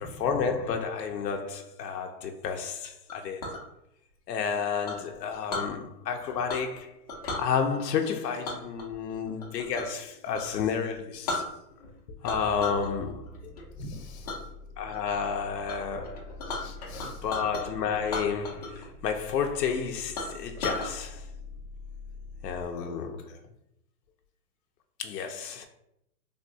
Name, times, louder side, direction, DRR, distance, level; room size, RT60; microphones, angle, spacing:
voice 1, 0.2-3.4 4.3-6.9 7.4-11.4 12.2-13.5 14.8-16.4 17.0-21.3 22.4-23.3 25.0-25.7, left 6 dB, 80° left, 0.6 m, -31 dB
Chink clink, 3.1-3.6 4.9-5.7 6.5-6.8 7.1-7.5 8.4-10.0 10.3-10.5 10.9-11.0 11.3-11.9 12.2-12.9 13.3-13.6 14.3-14.4 14.9-15.3 15.7-15.8 16.0-17.6 18.0-18.9 19.1-19.2 19.7-19.8 20.2-20.9, left 3 dB, 25° left, 0.4 m, -35 dB
sound 1, 12.3-22.7, left 2 dB, 25° right, 0.5 m, -45 dB
voice 2, 13.8-14.4 16.5-17.2 22.8-23.4, left 2 dB, 45° left, 0.8 m, -45 dB
3.4 x 2.2 x 2.6 m
hypercardioid pair, 145°, 48 cm